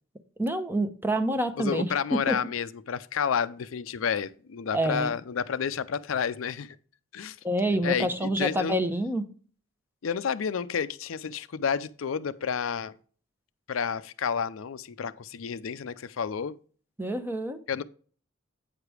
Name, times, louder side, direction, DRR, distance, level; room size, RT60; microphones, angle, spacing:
voice 1, 0.4-2.4 4.7-5.1 7.4-9.2 17.0-17.6, right 1 dB, 10° right, 0.7 m, -27 dB
voice 2, 1.6-6.8 7.1-7.4 7.8-8.8 10.0-13.0 13.7-16.5 17.7-17.8, left 7 dB, 90° left, 0.5 m, -30 dB
8.9 x 4.9 x 4.8 m
head